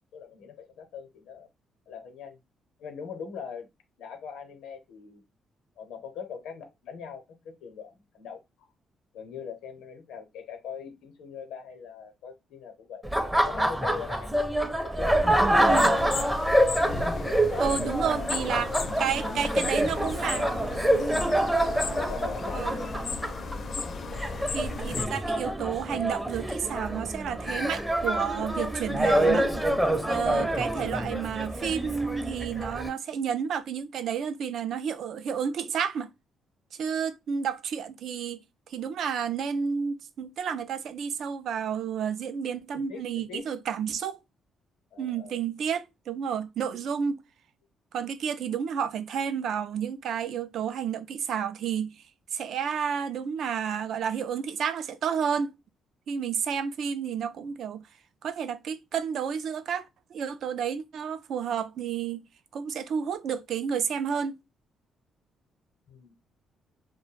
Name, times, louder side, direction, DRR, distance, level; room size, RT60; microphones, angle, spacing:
voice 1, 0.1-1.5 1.9-2.4 2.8-3.7 4.0-5.2 5.8-8.7 9.1-14.3 14.8-16.2 17.1-19.4 19.7-20.7 21.6-23.0 42.7-43.4 44.9-45.4 65.9-66.1, left 6 dB, 90° left, 0.7 m, -41 dB
Laughter, 13.0-32.9, right 1 dB, 10° right, 0.5 m, -27 dB
sound 1, 15.5-25.1, left 4 dB, 50° left, 0.4 m, -35 dB
voice 2, 17.6-18.7 19.0-20.5 22.5-22.7 24.5-29.5 30.1-36.1 36.8-38.4 38.7-44.2 45.0-47.2 47.9-52.0 52.3-55.5 56.1-57.8 58.2-62.2 62.5-64.3, right 7 dB, 70° right, 0.3 m, -31 dB
2.3 x 2.0 x 3.1 m
cardioid pair, 90°, 0 cm